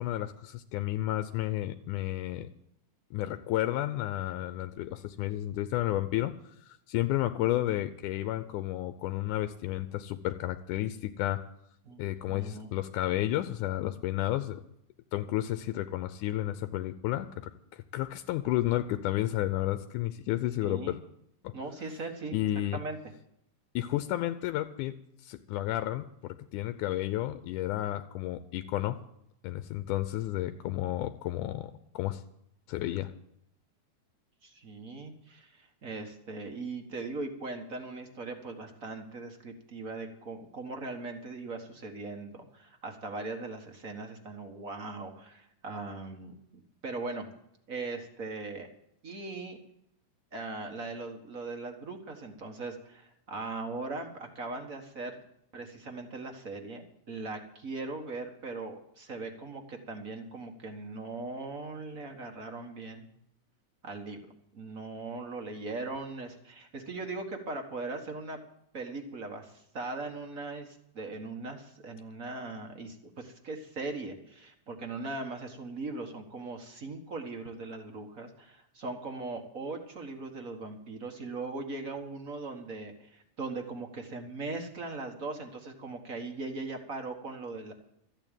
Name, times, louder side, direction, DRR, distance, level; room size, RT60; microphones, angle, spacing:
voice 1, 0.0-2.5 3.1-6.4 6.6-11.5 12.0-14.6 15.1-21.0 21.4-21.5 22.3-22.8 23.8-25.0 25.2-29.0 29.4-32.2 32.7-33.1, left 14 dB, 90° left, 10 dB, 2.2 m, -32 dB
voice 2, 11.8-12.7 20.6-21.0 21.5-22.4 22.7-23.0 34.4-47.3 47.7-48.7 49.0-49.6 50.3-55.2 55.5-63.1 63.8-64.2 64.5-68.4 68.7-87.7, right 3 dB, 40° right, 4 dB, 1.3 m, -39 dB
13.5 x 8.9 x 8.9 m, 0.75 s
omnidirectional pair, 3.5 m